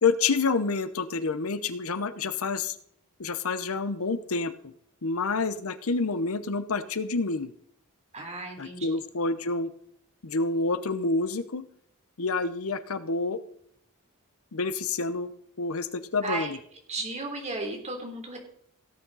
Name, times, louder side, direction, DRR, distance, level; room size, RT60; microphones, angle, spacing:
voice 1, 0.0-2.7 3.2-4.7 5.0-7.5 8.6-9.7 10.2-11.6 12.2-13.4 14.5-15.3 15.6-16.6, left 4 dB, 70° left, 12 dB, 0.8 m, -28 dB
voice 2, 8.1-8.9 16.2-16.5 16.9-18.4, right 3 dB, 30° right, 2 dB, 3.2 m, -34 dB
17.0 x 8.7 x 4.0 m, 0.70 s
head